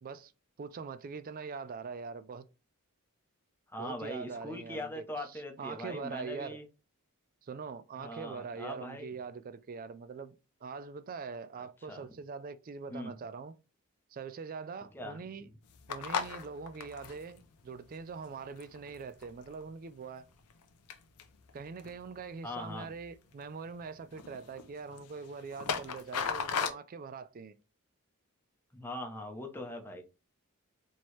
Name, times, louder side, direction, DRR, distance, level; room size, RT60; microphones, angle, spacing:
voice 1, 0.0-0.3 0.6-2.5 3.8-5.0 5.3-6.6 7.4-10.4 10.6-13.5 14.1-15.5 15.9-20.3 21.5-27.6, right 5 dB, 40° right, 0.3 m, -43 dB
voice 2, 3.7-6.7 7.9-9.1 11.6-12.1 12.9-13.2 14.9-15.2 22.4-22.9 28.7-30.0, left 1 dB, 10° left, 0.7 m, -41 dB
sound 1, 15.6-19.6 20.1-20.6 20.9-22.2 22.9-23.4 23.7-23.9 24.1-26.7, left 6 dB, 90° left, 0.6 m, -38 dB
4.4 x 3.0 x 3.1 m
head